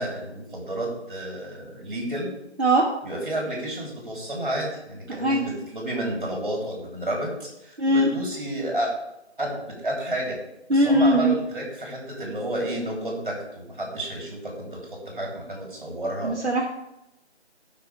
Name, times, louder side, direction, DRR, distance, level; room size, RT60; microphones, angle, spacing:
voice 1, 0.0-2.3 3.0-8.9 9.4-10.4 10.7-16.4, right 1 dB, 45° right, -2 dB, 3.5 m, -31 dB
voice 2, 5.1-5.5 7.8-8.1 10.7-11.3 16.2-16.7, right 1 dB, 70° right, -2 dB, 1.6 m, -20 dB
13.5 x 6.2 x 3.4 m, 0.88 s
figure-of-eight pair, 170°, 34 cm